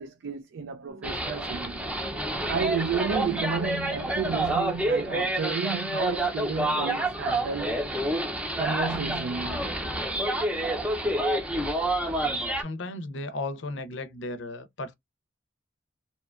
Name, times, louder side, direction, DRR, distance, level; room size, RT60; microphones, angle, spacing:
voice 1, 0.0-1.8 2.5-7.7 8.6-9.8, right 5 dB, 75° right, 0.4 m, -32 dB
sound 1, 0.9-10.9, right 1 dB, 55° right, 0.8 m, -47 dB
sound 2, 1.0-12.6, right 1 dB, 5° right, 0.6 m, -28 dB
voice 2, 12.6-14.9, left 2 dB, 85° left, 0.5 m, -35 dB
2.8 x 2.2 x 2.4 m
head